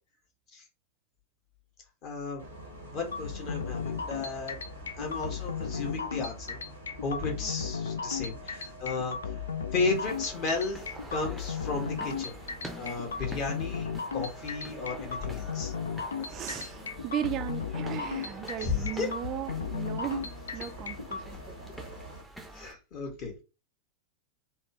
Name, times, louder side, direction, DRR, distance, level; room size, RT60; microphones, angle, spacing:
voice 1, 2.0-2.5 2.8-4.6 5.0-6.6 7.0-9.3 9.7-12.4 12.7-15.7 18.6-19.1 22.5-23.4, left 4 dB, 40° left, 1.3 m, -34 dB
Bus, 2.4-22.2, equal, 90° left, 1.4 m, -46 dB
sound 1, 3.1-21.2, left 6 dB, 70° left, 0.4 m, -35 dB
voice 2, 7.4-7.8 16.3-21.7, right 11 dB, 35° right, 0.3 m, -37 dB
sound 2, 9.9-22.7, right 1 dB, ahead, 0.6 m, -47 dB
3.4 x 2.3 x 2.9 m
figure-of-eight pair, 90°, 0 cm